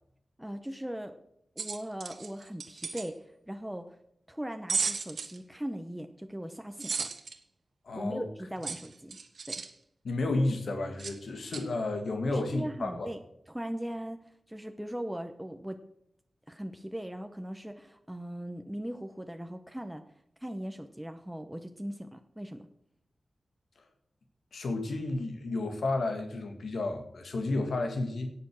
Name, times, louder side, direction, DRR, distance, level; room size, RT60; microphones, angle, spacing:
voice 1, 0.4-1.2 1.6-3.2 3.5-3.9 4.3-7.1 8.0-9.2 9.5-9.6 12.3-13.2 13.5-14.2 14.5-15.8 16.5-20.0 20.4-22.7, equal, 5° right, 6 dB, 0.8 m, -39 dB
sound 1, 1.6-3.1 4.7-5.4 6.8-7.3 8.6-9.7 11.0-11.2 11.5-11.6, right 5 dB, 75° right, 1.3 m, -34 dB
voice 2, 7.8-8.3 10.0-13.1 24.5-28.3, left 2 dB, 90° left, 5 dB, 2.0 m, -32 dB
17.5 x 6.8 x 6.3 m, 0.73 s
wide cardioid pair, 140°, 0 cm